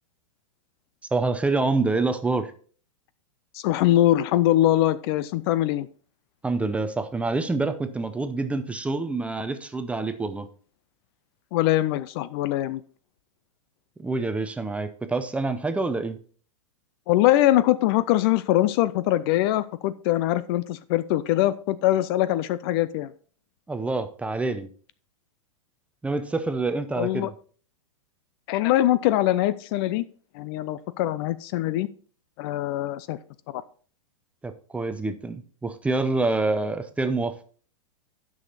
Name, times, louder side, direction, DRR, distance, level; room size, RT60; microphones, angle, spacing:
voice 1, 1.1-2.5 6.4-10.5 14.0-16.2 23.7-24.7 26.0-27.3 34.4-37.4, right 3 dB, 5° right, 10 dB, 0.6 m, -26 dB
voice 2, 3.5-5.9 11.5-12.8 17.1-23.1 27.0-27.3 28.5-30.0 30.3-31.9 32.4-33.2 33.5-33.6, left 14 dB, 45° left, 16 dB, 0.5 m, -22 dB
9.8 x 6.3 x 4.1 m, 0.43 s
hypercardioid pair, 125°, 17 cm